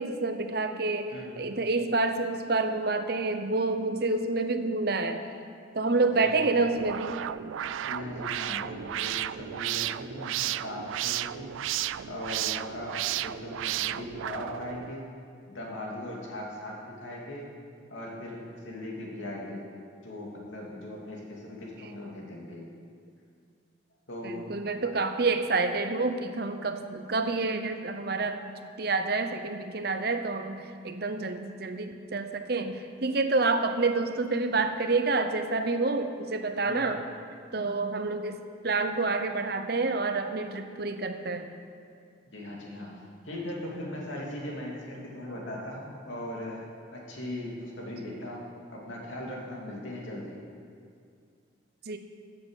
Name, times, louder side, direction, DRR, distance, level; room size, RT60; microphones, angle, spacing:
voice 1, 0.0-5.2 5.7-7.2 24.2-28.4 28.8-37.0 37.5-41.5 51.9-52.0, right 3 dB, 55° right, 7 dB, 0.8 m, -28 dB
sound 1, 6.7-14.9, right 12 dB, 85° right, 0.3 m, -33 dB
voice 2, 7.8-11.5 12.1-15.0 15.5-17.5 17.9-19.7 20.0-22.6 24.1-24.5 36.7-36.9 42.3-50.4, left 1 dB, 80° left, -3 dB, 2.7 m, -39 dB
14.5 x 7.6 x 6.5 m, 2.3 s
head